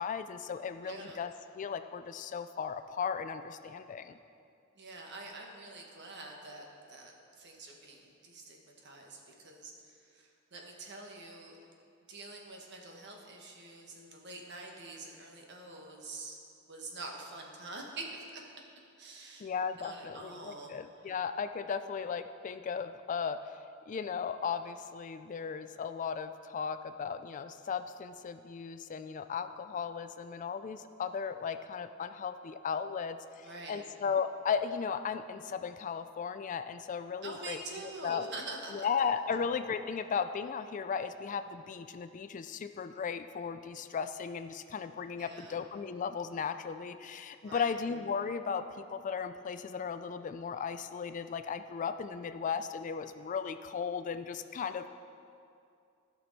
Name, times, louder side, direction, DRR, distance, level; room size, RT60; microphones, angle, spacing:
voice 1, 0.0-4.2 19.4-23.6 23.9-38.3 38.7-54.9, left 6 dB, 40° left, 10 dB, 0.3 m, -36 dB
voice 2, 0.8-1.2 4.8-7.1 7.4-8.6 8.8-9.7 10.1-11.6 12.1-16.4 16.7-18.4 19.0-19.5 19.8-20.7 33.4-33.8 37.2-38.7 45.2-45.6 47.4-47.7, right 2 dB, 55° right, 1 dB, 1.4 m, -46 dB
15.0 x 6.0 x 4.1 m, 2.4 s
head